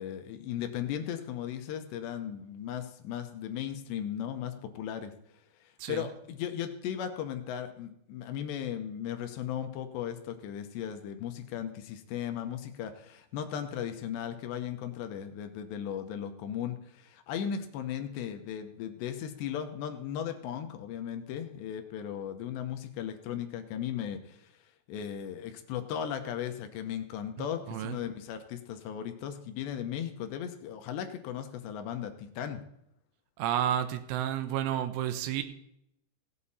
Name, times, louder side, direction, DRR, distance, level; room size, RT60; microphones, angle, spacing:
voice 1, 0.0-5.1 5.9-24.4 24.9-32.6, left 9 dB, 75° left, 7 dB, 2.8 m, -36 dB
voice 2, 5.8-6.1 27.4-28.0 33.4-35.4, right 11 dB, 80° right, 9 dB, 3.3 m, -31 dB
17.0 x 8.6 x 4.1 m, 0.76 s
omnidirectional pair, 5.6 m